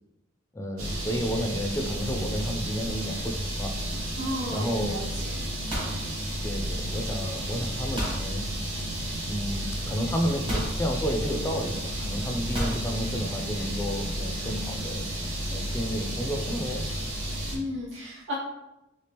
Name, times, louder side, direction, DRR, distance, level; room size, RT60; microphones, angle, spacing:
voice 1, 0.5-3.8 4.5-5.0 6.4-8.5 9.2-15.1 15.5-16.9, equal, 15° left, 3 dB, 0.4 m, -31 dB
sound 1, 0.8-17.6, right 1 dB, 85° right, 1.2 m, -32 dB
voice 2, 4.2-5.5 17.5-18.3, left 1 dB, 60° right, -6 dB, 0.6 m, -34 dB
sound 2, 5.7-6.9 8.0-8.3 9.4-9.5 10.5-10.8 12.5-12.9, equal, 25° right, 1.0 m, -33 dB
3.4 x 3.3 x 2.9 m, 0.92 s
head